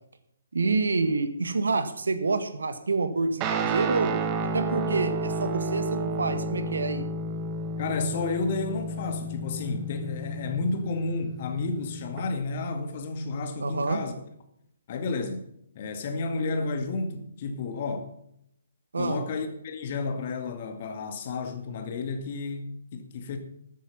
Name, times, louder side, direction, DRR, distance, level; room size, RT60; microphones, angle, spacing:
voice 1, 0.5-4.1 4.4-7.1 13.6-14.0 18.9-19.2, right 3 dB, 70° right, 1.7 m, -27 dB
Guitar, 3.4-12.2, right 2 dB, 25° right, 1.5 m, -31 dB
voice 2, 7.8-14.1 14.9-15.4 15.7-18.1 19.0-23.4, left 3 dB, 40° left, 2.1 m, -31 dB
13.5 x 9.3 x 5.5 m
figure-of-eight pair, 130°, 0 cm